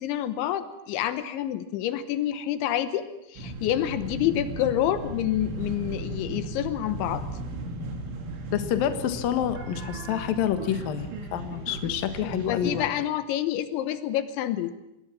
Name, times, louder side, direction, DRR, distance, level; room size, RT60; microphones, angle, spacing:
voice 1, 0.0-3.1 3.3-7.2 12.2-14.7, left 12 dB, 85° left, 11 dB, 3.5 m, -28 dB
sound 1, 3.4-12.9, right 2 dB, 80° right, 5.2 m, -36 dB
voice 2, 8.5-12.8, left 10 dB, 60° left, 9 dB, 2.9 m, -28 dB
25.5 x 21.5 x 7.4 m, 0.89 s
omnidirectional pair, 5.3 m